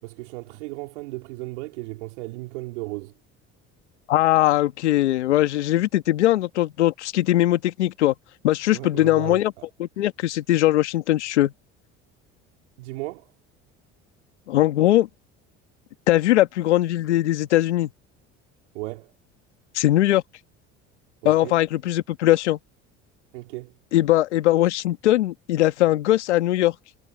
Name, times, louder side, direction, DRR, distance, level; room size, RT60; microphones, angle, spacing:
voice 1, 0.0-3.1 8.7-9.6 12.8-13.3 18.7-19.1 21.2-21.5 23.3-23.7, right 22 dB, 80° right, 3.7 m, -35 dB
voice 2, 4.1-8.1 8.4-9.5 9.8-11.5 14.5-15.1 16.1-17.9 19.7-20.2 21.2-22.6 23.9-26.7, left 14 dB, 90° left, 1.7 m, -20 dB
hypercardioid pair, 70°, 34 cm